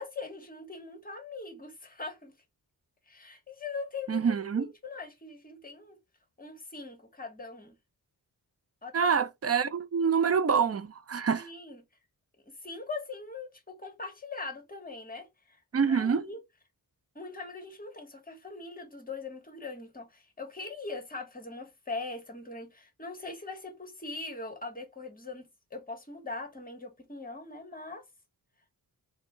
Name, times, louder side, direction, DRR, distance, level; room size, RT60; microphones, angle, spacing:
voice 1, 0.0-2.3 3.1-6.0 6.4-7.7 8.8-9.1 11.4-11.8 12.5-15.6 15.9-16.4 17.1-28.0, left 3 dB, 25° left, 1.4 m, -41 dB
voice 2, 4.1-4.7 8.9-11.5 15.7-16.2, right 6 dB, 40° right, 0.5 m, -26 dB
4.3 x 2.2 x 4.5 m
wide cardioid pair, 155°, 38 cm